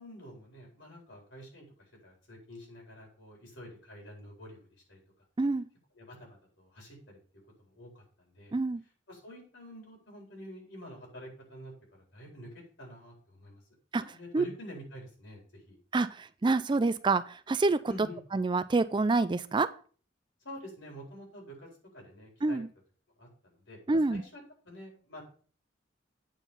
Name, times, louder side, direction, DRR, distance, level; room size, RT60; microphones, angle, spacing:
voice 1, 0.0-1.7 2.0-5.0 5.9-7.2 7.6-8.5 9.1-13.6 14.1-15.8 17.9-18.2 20.4-22.6 23.2-25.2, equal, 85° left, -1 dB, 4.5 m, -48 dB
voice 2, 15.9-17.8 18.3-19.7 22.4-22.7 23.9-24.2, right 3 dB, 25° right, 14 dB, 0.4 m, -27 dB
8.9 x 4.6 x 5.5 m, 0.42 s
head